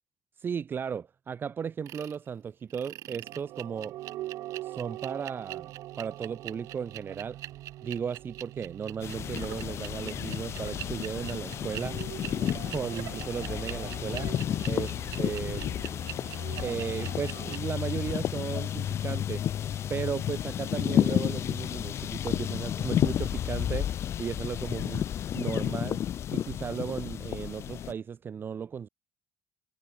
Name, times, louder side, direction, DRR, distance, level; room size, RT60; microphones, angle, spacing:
voice 1, 0.4-4.0 4.6-5.7 6.0-7.4 7.8-12.0 12.5-14.3 14.7-15.8 16.6-19.4 19.9-23.9 24.2-25.0 25.3-26.0 26.3-28.9, right 7 dB, 40° right, 1.8 m, -35 dB
sound 1, 1.9-2.2 2.7-17.6, right 15 dB, 80° right, 2.9 m, -42 dB
sound 2, 9.0-27.9, left 10 dB, 55° left, 0.8 m, -31 dB
cardioid pair, 105°, 5 cm